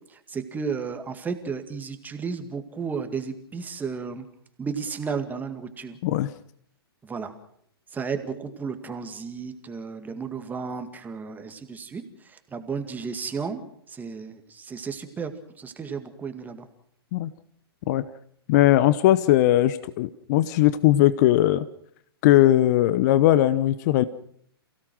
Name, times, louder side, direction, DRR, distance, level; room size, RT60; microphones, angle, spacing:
voice 1, 0.3-4.3 4.6-6.0 7.0-7.3 7.9-12.0 12.3-13.6 13.9-15.3 15.6-16.7, right 5 dB, 15° right, 7 dB, 2.1 m, -33 dB
voice 2, 18.5-21.7 22.2-24.0, left 14 dB, 40° left, 15 dB, 0.9 m, -19 dB
28.0 x 17.0 x 6.2 m, 0.66 s
figure-of-eight pair, 115°, 13 cm